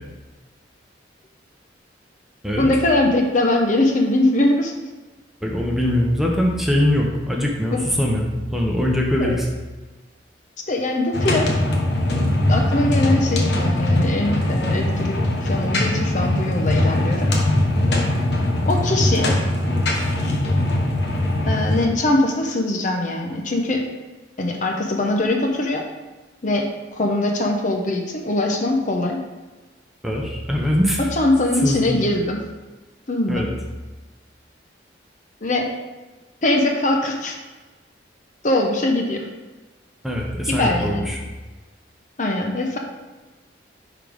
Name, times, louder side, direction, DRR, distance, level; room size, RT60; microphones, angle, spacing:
voice 1, 2.6-4.7 7.7-7.8 9.2-9.4 10.7-11.5 12.5-17.3 18.7-19.3 21.5-23.8 24.4-25.8 26.4-26.7 26.9-29.2 31.1-32.4 33.1-33.5 35.4-35.7 36.4-37.4 38.4-39.3 40.5-41.2 42.2-42.8, left 2 dB, 45° left, 1 dB, 0.8 m, -21 dB
voice 2, 5.4-9.5 30.0-31.0 31.6-32.0 33.3-33.5 40.0-41.2, left 1 dB, ahead, -2 dB, 0.9 m, -22 dB
sound 1, 11.1-21.9, left 1 dB, 65° left, 1.1 m, -21 dB
11.0 x 3.9 x 3.5 m, 1.2 s
head